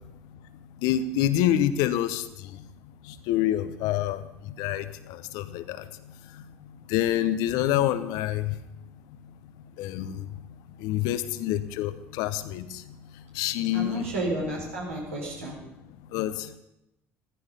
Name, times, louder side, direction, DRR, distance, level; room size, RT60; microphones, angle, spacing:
voice 1, 0.8-2.2 3.1-4.2 4.6-5.8 6.9-8.5 9.8-10.2 10.8-12.8 13.3-14.1 16.1-16.5, left 12 dB, 65° left, 12 dB, 1.0 m, -27 dB
voice 2, 13.7-15.5, right 2 dB, 80° right, -1 dB, 4.5 m, -31 dB
15.0 x 14.5 x 5.5 m, 0.85 s
figure-of-eight pair, 60°, 7 cm